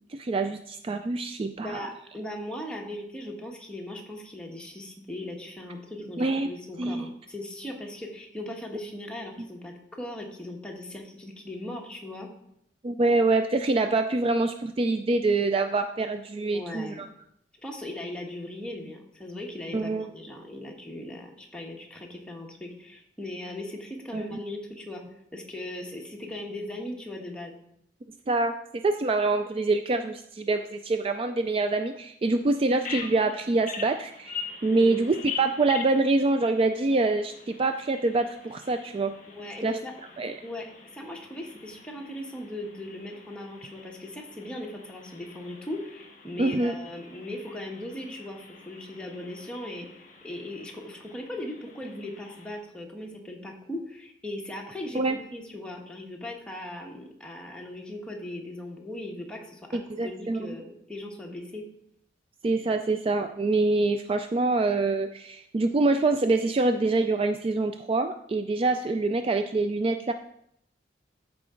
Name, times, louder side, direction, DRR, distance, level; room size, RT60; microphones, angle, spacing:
voice 1, 0.1-1.9 6.2-6.5 6.8-7.1 12.8-17.1 19.7-20.1 24.1-24.4 28.3-28.6 28.8-39.1 39.6-39.8 40.2-40.4 46.4-46.7 54.9-55.2 59.7-60.5 62.4-70.1, right 3 dB, 30° right, 7 dB, 0.3 m, -25 dB
voice 2, 1.4-12.3 16.5-17.1 17.6-25.0 25.3-27.5 34.7-35.1 39.3-39.9 40.4-61.6, left 1 dB, 5° left, -1 dB, 1.3 m, -38 dB
Bird vocalization bird call bird song, 32.8-52.6, left 5 dB, 45° left, 1.3 m, -44 dB
13.5 x 4.8 x 3.8 m, 0.74 s
head